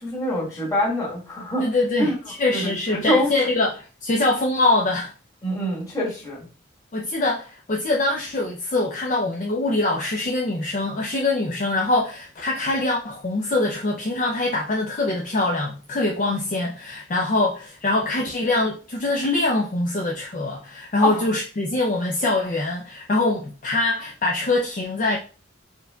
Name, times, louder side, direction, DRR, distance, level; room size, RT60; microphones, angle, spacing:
voice 1, 0.0-1.6 2.0-2.1 2.5-3.3 5.4-6.5 21.0-21.3, left 1 dB, 20° left, 1.8 m, -25 dB
voice 2, 1.6-5.1 6.9-25.2, left 2 dB, 40° left, 0.5 m, -23 dB
4.4 x 3.8 x 2.2 m
head